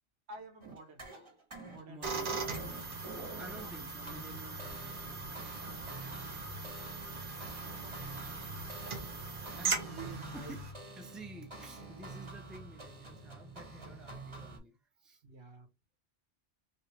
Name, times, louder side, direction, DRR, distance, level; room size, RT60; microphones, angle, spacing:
voice 1, 0.3-1.1 1.7-2.1 2.9-3.0 6.7-9.1 9.6-10.6 11.3-11.5 13.7-14.2 15.2-15.7, right 3 dB, 90° right, 1.2 m, -51 dB
sound 1, 0.6-14.6, right 2 dB, 30° right, 0.9 m, -48 dB
voice 2, 1.9-2.4 3.4-5.3 9.6-10.6 11.0-15.2, right 2 dB, ahead, 0.6 m, -51 dB
sound 2, 2.0-10.7, right 4 dB, 55° right, 0.9 m, -40 dB
3.3 x 2.5 x 3.0 m
omnidirectional pair, 1.1 m